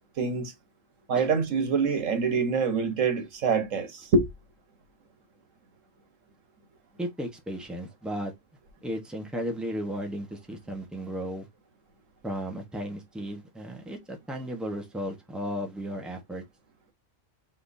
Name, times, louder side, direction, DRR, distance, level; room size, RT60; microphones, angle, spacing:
voice 1, 0.2-0.5 1.1-4.3, right 4 dB, 90° right, 1.5 m, -25 dB
voice 2, 7.0-8.3 8.8-11.5 12.2-16.4, equal, ahead, 1.0 m, -35 dB
4.5 x 3.8 x 2.6 m
omnidirectional pair, 1.3 m